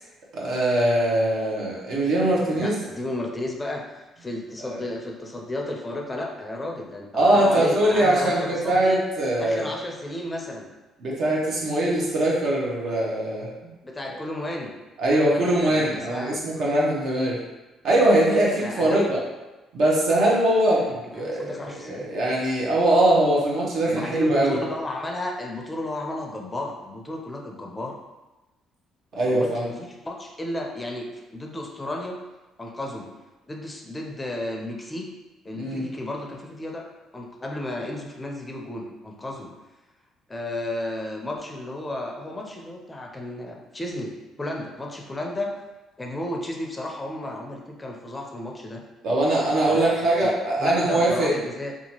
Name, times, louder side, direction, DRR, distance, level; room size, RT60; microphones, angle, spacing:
voice 1, 0.3-2.8 4.6-4.8 7.1-9.7 11.0-13.7 15.0-17.4 17.8-19.2 19.7-24.6 29.2-29.7 35.5-35.9 49.0-51.3, right 1 dB, 65° right, -4 dB, 0.8 m, -22 dB
voice 2, 2.5-9.0 9.4-10.7 13.8-14.7 15.1-16.4 18.6-19.1 20.8-22.1 23.9-28.0 29.3-32.2 32.6-33.1 33.5-35.1 35.4-36.9 37.1-39.5 40.3-45.5 46.0-48.8 49.7-49.9 50.2-50.3 50.6-51.7, left 1 dB, 20° left, 0 dB, 0.4 m, -33 dB
2.8 x 2.3 x 2.8 m, 1.1 s
cardioid pair, 85°, 0 cm